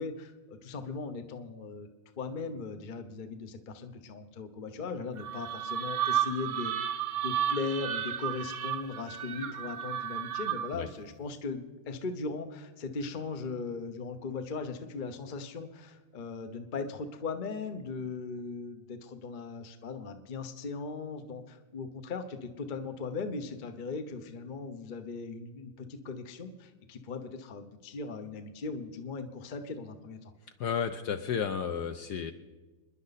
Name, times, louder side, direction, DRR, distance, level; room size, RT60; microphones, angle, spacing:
voice 1, 0.0-1.9 2.2-6.7 7.2-30.3, left 4 dB, 45° left, 7 dB, 0.6 m, -38 dB
sound 1, 5.2-10.9, right 10 dB, 65° right, 0.9 m, -33 dB
voice 2, 30.6-32.3, left 7 dB, 65° left, 8 dB, 1.1 m, -32 dB
26.5 x 10.5 x 4.1 m, 1.2 s
omnidirectional pair, 2.2 m